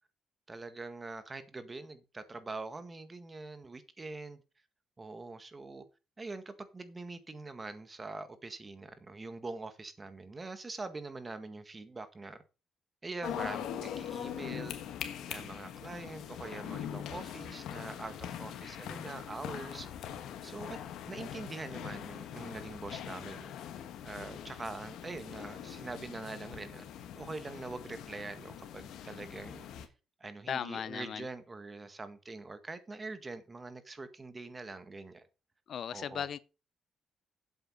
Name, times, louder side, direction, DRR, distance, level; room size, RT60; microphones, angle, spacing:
voice 1, 0.5-4.4 5.0-5.8 6.2-12.4 13.0-14.8 15.3-20.1 20.4-20.8 21.1-23.5 24.0-26.8 27.2-29.7 30.2-35.3 35.9-36.3, right 3 dB, 25° right, 1.7 m, -44 dB
sound 1, 13.2-29.9, left 9 dB, 85° left, 1.4 m, -42 dB
voice 2, 30.5-31.3 35.7-36.4, left 8 dB, 60° left, 0.6 m, -37 dB
8.1 x 7.9 x 5.6 m
cardioid pair, 90°, 0 cm